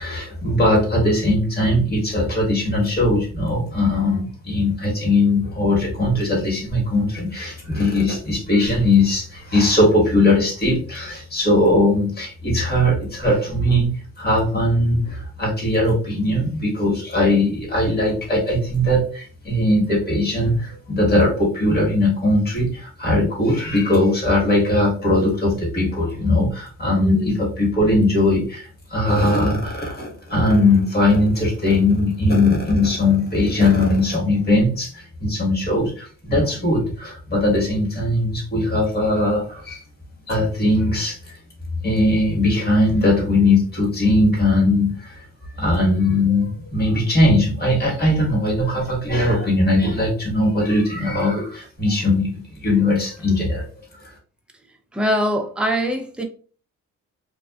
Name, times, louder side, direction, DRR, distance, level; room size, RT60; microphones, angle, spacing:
voice 1, 0.0-13.9 14.2-39.8 40.3-41.2 41.8-45.2 45.6-53.6, left 1 dB, 30° left, 1.4 m, -19 dB
voice 2, 27.0-27.4 54.9-56.2, equal, 5° right, 0.5 m, -23 dB
2.4 x 2.4 x 2.3 m
cardioid pair, 90°, 30 cm